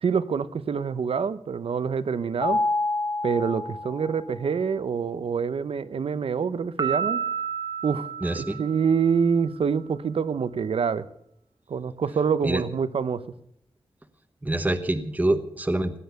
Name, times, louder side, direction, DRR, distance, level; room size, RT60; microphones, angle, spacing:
voice 1, 0.0-2.6 3.2-7.2 7.8-8.1 8.3-11.0 11.7-13.2, right 6 dB, 90° right, 14 dB, 0.8 m, -26 dB
Mallet percussion, 2.4-4.4, left 2 dB, 35° left, 5.3 m, -27 dB
Piano, 6.8-9.4, right 7 dB, 45° right, 1.9 m, -31 dB
voice 2, 8.2-8.6 12.4-12.6 14.4-16.0, right 1 dB, 15° right, 8 dB, 1.1 m, -25 dB
17.0 x 10.5 x 6.9 m, 0.71 s
wide cardioid pair, 95°, 9 cm